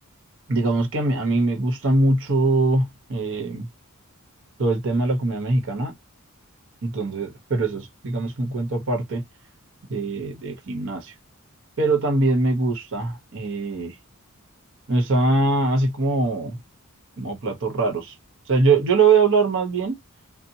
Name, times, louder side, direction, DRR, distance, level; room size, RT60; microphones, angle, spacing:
voice 1, 0.5-3.7 4.6-5.9 6.8-9.2 9.9-11.1 11.8-13.9 14.9-16.6 17.2-18.1 18.5-20.0, right 3 dB, 60° right, 1.0 m, -22 dB
2.8 x 2.1 x 2.7 m
head